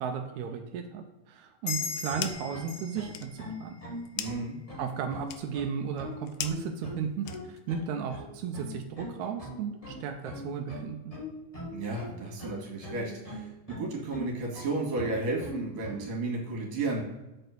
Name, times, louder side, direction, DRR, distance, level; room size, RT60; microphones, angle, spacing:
voice 1, 0.0-3.7 4.8-11.1, right 6 dB, 80° right, 4 dB, 1.8 m, -35 dB
sound 1, 1.7-2.6 2.9-7.8, left 11 dB, 90° left, 2.4 m, -41 dB
sound 2, 1.7-4.8, left 5 dB, 60° left, 3.7 m, -39 dB
sound 3, 1.8-16.1, left 1 dB, 25° left, 0.8 m, -41 dB
voice 2, 4.2-4.6 11.7-17.0, right 3 dB, 55° right, -1 dB, 3.2 m, -33 dB
7.7 x 4.3 x 6.6 m, 1.0 s
omnidirectional pair, 3.9 m